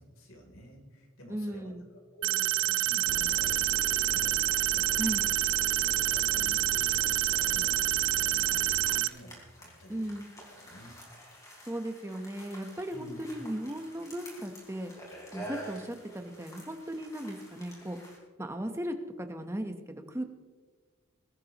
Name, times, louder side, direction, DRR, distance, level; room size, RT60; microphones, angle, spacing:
voice 1, 0.0-1.7 2.1-5.1 5.5-10.1 10.5-11.0 12.9-13.2, equal, 75° left, 1 dB, 3.2 m, -50 dB
voice 2, 1.3-1.9 5.0-5.2 9.9-10.3 11.7-14.9 15.3-18.0 18.4-20.2, right 1 dB, 10° right, 6 dB, 0.9 m, -36 dB
sound 1, 2.2-9.1, right 15 dB, 60° right, 0.4 m, -27 dB
sound 2, 3.1-9.0, left 6 dB, 60° left, 0.3 m, -41 dB
sound 3, 8.3-18.2, equal, 15° left, 3.7 m, -48 dB
21.5 x 13.5 x 3.0 m, 1.4 s
head